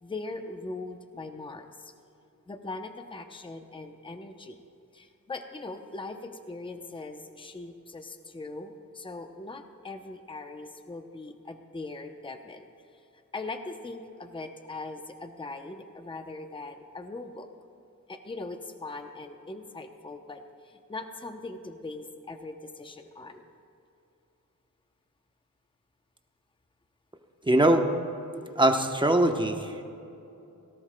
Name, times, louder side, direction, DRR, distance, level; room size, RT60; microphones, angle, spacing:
voice 1, 0.0-1.7 2.5-4.6 4.9-12.6 13.3-17.5 18.1-23.5, left 2 dB, 15° left, 6 dB, 0.6 m, -40 dB
voice 2, 27.5-27.8 28.6-29.8, right 1 dB, 15° right, 5 dB, 0.9 m, -22 dB
17.5 x 17.5 x 2.2 m, 2.8 s
wide cardioid pair, 110°, 32 cm